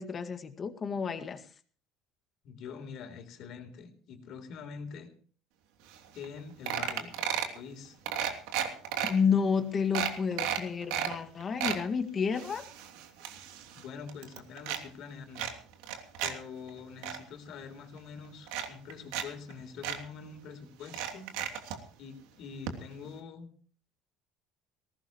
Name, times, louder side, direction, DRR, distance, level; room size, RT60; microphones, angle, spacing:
voice 1, 0.0-1.4 9.1-12.7, left 6 dB, 25° left, 7 dB, 1.9 m, -30 dB
voice 2, 2.4-5.1 6.1-7.1 7.5-8.0 13.7-15.5 16.2-21.3 22.0-23.5, left 6 dB, 50° left, 6 dB, 3.7 m, -45 dB
sound 1, 5.9-6.0 6.2-6.4 6.7-7.6 8.1-9.1 9.6-9.7 9.9-11.1 11.4-11.8 12.3-13.8 14.1-14.8 15.4-16.3 16.7-17.2 18.0-18.1 18.5-19.3 19.5-19.6 19.8-20.0 20.9-21.8 22.7-22.8 23.0-23.1, right 9 dB, 80° right, 3.0 m, -33 dB
20.5 x 18.0 x 3.1 m, 0.43 s
cardioid pair, 160°, 0 cm